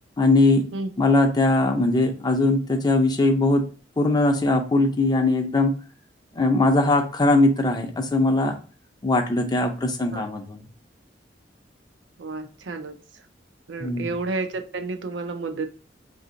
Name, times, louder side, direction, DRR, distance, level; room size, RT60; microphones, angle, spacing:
voice 1, 0.2-0.7 1.0-3.7 4.0-5.8 6.3-8.6 9.0-10.6 13.8-14.1, left 2 dB, 25° left, 4 dB, 0.5 m, -20 dB
voice 2, 12.2-13.0 13.7-15.7, right 3 dB, 85° right, 6 dB, 0.5 m, -30 dB
2.8 x 2.7 x 3.8 m, 0.37 s
head